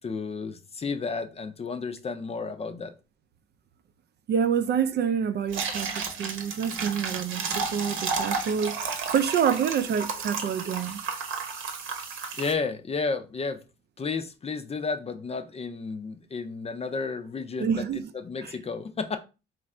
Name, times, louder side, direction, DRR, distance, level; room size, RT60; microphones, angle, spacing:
voice 1, 0.0-2.9 12.4-13.6 14.0-19.2, left 4 dB, 30° left, 0.6 m, -32 dB
voice 2, 4.3-11.0 17.6-18.0 18.4-18.5, right 7 dB, 55° right, 0.5 m, -27 dB
sound 1, 5.5-12.5, right 5 dB, 85° right, 0.9 m, -32 dB
3.1 x 2.5 x 4.3 m
cardioid pair, 90°, 20 cm